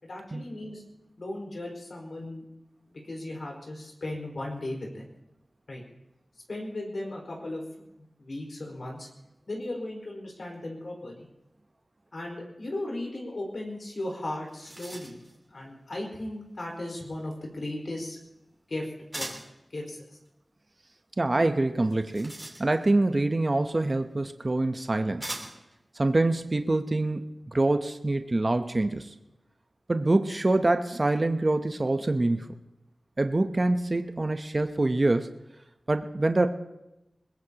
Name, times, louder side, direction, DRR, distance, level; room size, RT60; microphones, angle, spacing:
voice 1, 0.0-0.8 1.2-2.4 2.9-5.1 5.7-5.8 6.5-7.6 8.2-9.1 9.5-11.3 12.1-15.2 15.5-18.2 18.7-19.3 19.7-20.0, left 1 dB, 70° left, -1 dB, 4.8 m, -36 dB
sound 1, 14.0-14.1 14.3-15.4 19.1-19.6 21.8-23.0 24.1-24.2 25.2-25.7, right 1 dB, 20° right, 3.5 m, -40 dB
voice 2, 21.2-22.3 22.6-25.3 26.0-27.2 27.5-29.1 29.9-32.5 33.2-35.3 35.9-36.5, right 2 dB, 40° right, 7 dB, 0.8 m, -25 dB
22.0 x 21.0 x 2.9 m, 0.93 s
wide cardioid pair, 70°, 0 cm